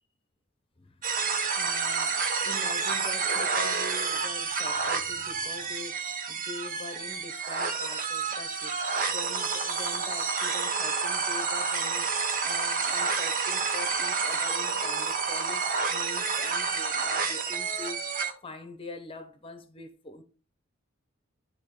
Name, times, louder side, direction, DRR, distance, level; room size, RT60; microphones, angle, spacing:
voice 1, 0.8-20.2, left 3 dB, 25° left, 0.9 m, -44 dB
sound 1, 1.0-18.3, right 5 dB, 45° right, 1.0 m, -29 dB
10.5 x 3.6 x 3.7 m
head